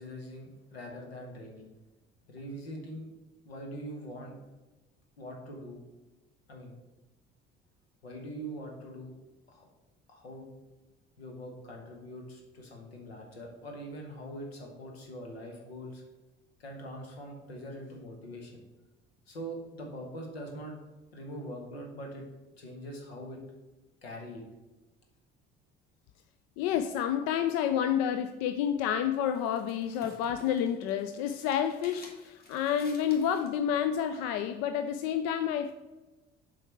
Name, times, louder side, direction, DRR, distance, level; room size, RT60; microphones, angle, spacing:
voice 1, 0.0-1.7 2.3-3.1 3.4-4.4 5.2-5.8 6.5-6.8 8.0-9.2 9.5-9.7 10.1-10.5 11.2-16.0 16.6-18.6 19.3-20.8 21.1-22.2 22.6-23.4 24.0-24.4, equal, 80° left, 1 dB, 1.4 m, -43 dB
voice 2, 26.6-35.7, left 9 dB, 55° left, 9 dB, 0.5 m, -29 dB
sound 1, 28.9-33.6, left 2 dB, 30° left, 2.1 m, -54 dB
7.6 x 4.7 x 4.6 m, 1.1 s
figure-of-eight pair, 50°, 30 cm